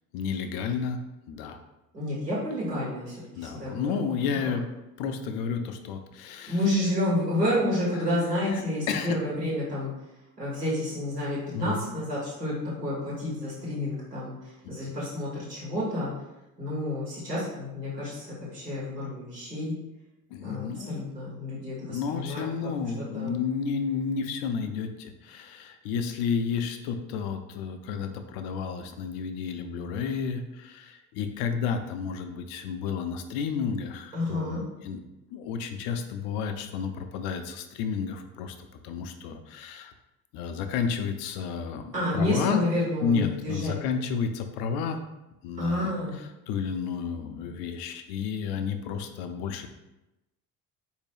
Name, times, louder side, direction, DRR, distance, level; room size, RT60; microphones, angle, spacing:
voice 1, 0.1-1.0 1.3-1.6 3.4-4.6 5.0-6.6 8.5-9.2 11.5-11.8 20.3-21.0 21.8-35.0 35.3-38.6 38.8-39.9 40.3-42.6 43.0-45.0 45.4-49.7, left 6 dB, 50° left, 7 dB, 0.5 m, -31 dB
voice 2, 1.9-3.9 4.2-4.4 6.5-9.9 10.4-14.4 14.7-16.1 16.6-19.7 20.4-22.7 23.0-23.4 34.1-34.6 41.9-43.7 45.6-46.1, left 1 dB, 90° right, -8 dB, 1.4 m, -30 dB
4.3 x 2.7 x 3.3 m, 0.97 s
figure-of-eight pair, 55°, 47 cm